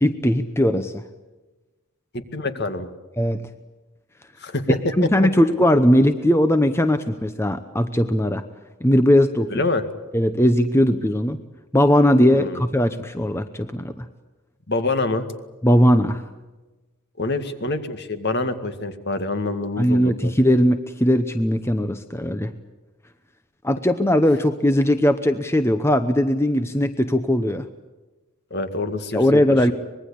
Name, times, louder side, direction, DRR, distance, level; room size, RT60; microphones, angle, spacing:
voice 1, 0.0-1.0 3.2-3.4 5.0-8.4 8.8-9.5 10.1-11.4 11.7-14.1 15.6-16.2 19.8-22.5 23.6-27.6 29.1-29.7, equal, 10° left, 9 dB, 0.8 m, -19 dB
voice 2, 2.1-2.9 4.4-5.1 9.5-9.9 12.3-12.7 14.7-15.2 17.2-20.3 28.5-29.4, left 2 dB, 50° left, 8 dB, 2.1 m, -26 dB
25.0 x 21.5 x 8.6 m, 1.1 s
head